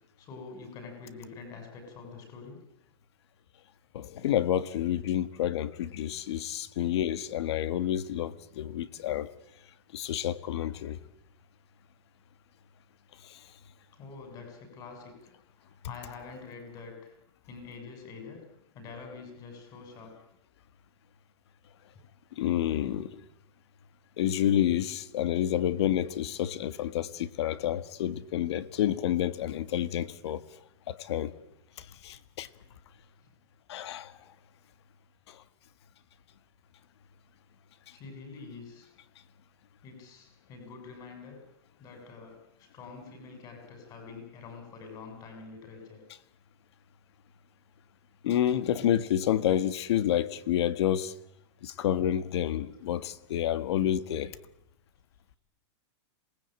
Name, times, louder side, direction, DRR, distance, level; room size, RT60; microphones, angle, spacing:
voice 1, 0.2-2.6 13.9-17.1 17.5-18.4 18.7-20.1 37.9-38.9 39.8-41.4 41.8-46.0, left 4 dB, 25° left, 6.8 m, -46 dB
voice 2, 3.9-9.3 9.9-11.0 13.2-13.4 22.3-23.2 24.2-30.4 30.9-31.3 31.8-32.5 33.7-34.2 35.3-35.4 48.2-51.1 51.6-54.4, left 11 dB, 65° left, 1.6 m, -29 dB
26.5 x 19.5 x 8.9 m
supercardioid pair, 160°, 15 cm